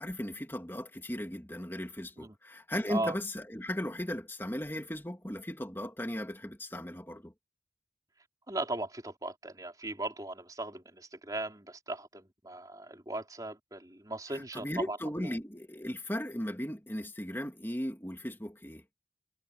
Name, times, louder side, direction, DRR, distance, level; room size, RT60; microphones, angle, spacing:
voice 1, 0.0-7.3 14.3-18.8, left 1 dB, 15° left, 2.7 m, -37 dB
voice 2, 8.5-15.3, right 2 dB, 20° right, 4.4 m, -38 dB
head